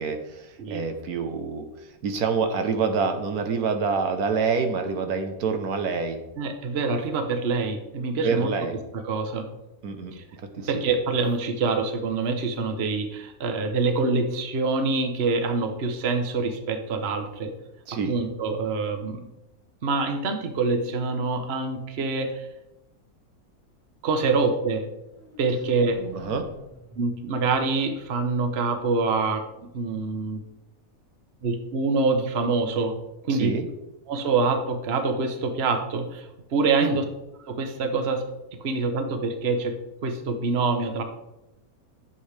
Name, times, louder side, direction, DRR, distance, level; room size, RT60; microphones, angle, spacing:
voice 1, 0.0-6.2 8.2-8.8 9.8-10.1 10.5-10.8 17.9-18.1 26.1-26.4 33.3-33.7 36.8-36.9, right 5 dB, 80° right, 6 dB, 1.4 m, -27 dB
voice 2, 6.4-8.5 8.9-9.5 10.1-10.2 10.7-17.5 18.1-19.2 19.8-22.5 24.0-24.8 25.4-26.0 27.0-29.4 29.7-30.4 31.4-33.0 33.2-33.5 34.1-37.0 37.4-38.2 38.6-39.8 40.0-41.0, right 4 dB, 50° right, 6 dB, 1.1 m, -25 dB
sound 1, 24.9-28.9, right 2 dB, 5° right, 2.5 m, -48 dB
11.0 x 7.4 x 3.4 m, 0.92 s
omnidirectional pair, 1.6 m